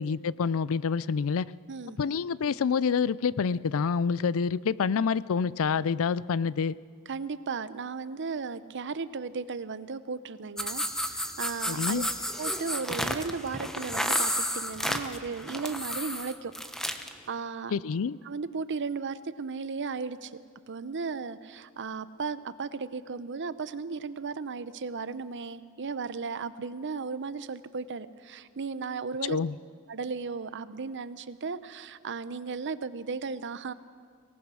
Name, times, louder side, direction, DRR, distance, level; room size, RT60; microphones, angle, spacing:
voice 1, 0.0-1.5 2.0-6.8 11.7-12.1 17.7-18.2 29.3-29.5, left 5 dB, 65° left, 19 dB, 0.4 m, -27 dB
voice 2, 1.7-2.0 7.1-12.0 12.4-16.5 16.8-17.7 18.2-20.4 20.7-29.4 29.9-33.7, right 5 dB, 55° right, 14 dB, 0.7 m, -35 dB
sound 1, 10.6-17.1, equal, ahead, 1.0 m, -32 dB
24.0 x 18.5 x 6.3 m, 2.1 s
head